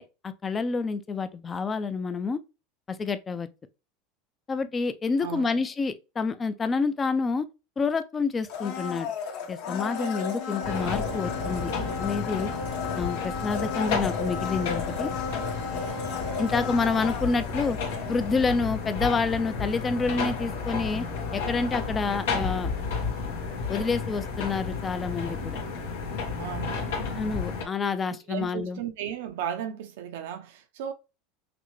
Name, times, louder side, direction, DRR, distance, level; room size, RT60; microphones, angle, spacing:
voice 1, 0.0-2.4 2.9-3.5 4.5-7.5 7.8-9.1 9.5-11.7 12.0-12.5 13.0-15.1 16.4-17.8 18.1-21.1 21.3-22.7 23.7-25.6 27.2-28.8, left 4 dB, 20° left, 0.5 m, -28 dB
voice 2, 5.2-5.6 26.3-27.1 28.3-30.9, right 9 dB, 75° right, 0.8 m, -35 dB
Domestic sounds home sounds, 8.5-18.4 18.7-18.8, left 5 dB, 65° left, 1.5 m, -34 dB
sound 1, 10.6-27.6, left 5 dB, 85° left, 1.4 m, -32 dB
5.9 x 2.1 x 3.1 m
supercardioid pair, 120°, 0 cm